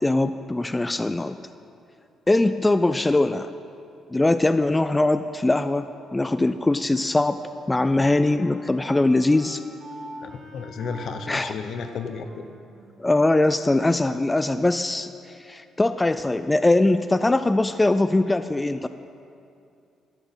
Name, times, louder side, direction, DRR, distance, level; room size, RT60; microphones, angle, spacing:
voice 1, 0.0-1.4 2.3-3.5 4.1-7.4 7.7-9.6 11.3-11.5 13.0-18.9, left 2 dB, 15° left, 11 dB, 0.3 m, -21 dB
Wind instrument woodwind instrument, 6.9-14.0, right 1 dB, 55° right, 1.9 m, -45 dB
voice 2, 10.2-12.4, left 5 dB, 65° left, 8 dB, 0.8 m, -33 dB
12.0 x 6.0 x 7.1 m, 2.5 s
cardioid pair, 90°, 0 cm